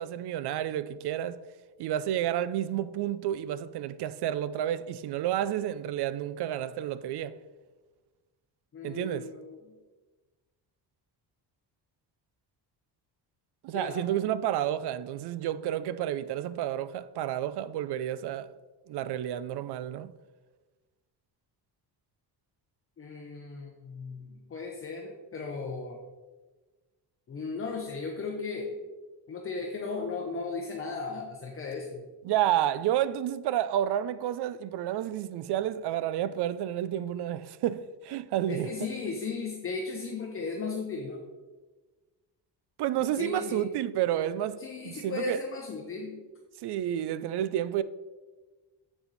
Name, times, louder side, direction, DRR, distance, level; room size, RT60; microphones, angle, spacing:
voice 1, 0.0-1.4 1.8-7.3 8.8-9.3 13.6-18.5 18.9-20.1 32.2-38.7 42.8-45.4 46.6-47.8, right 11 dB, 70° right, 0.5 m, -30 dB
voice 2, 8.7-9.6 13.7-14.0 23.0-26.0 27.3-28.8 29.3-32.1 38.5-41.2 43.2-43.6 44.6-46.2, left 4 dB, 30° left, 0.9 m, -36 dB
7.9 x 6.9 x 4.1 m
cardioid pair, 155°, 41 cm